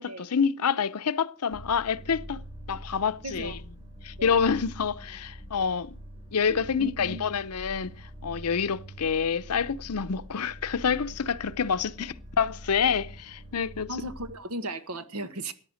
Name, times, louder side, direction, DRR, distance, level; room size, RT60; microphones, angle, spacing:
voice 1, 0.0-2.4 2.7-3.6 4.0-5.9 6.3-7.9 8.2-13.9, left 6 dB, 90° left, 0.7 m, -27 dB
sound 1, 1.5-14.3, equal, 25° right, 3.3 m, -44 dB
voice 2, 3.2-3.6 4.2-4.4 6.5-7.3 12.0-12.1 13.9-15.5, right 1 dB, 80° right, 1.5 m, -37 dB
14.5 x 9.7 x 6.4 m
head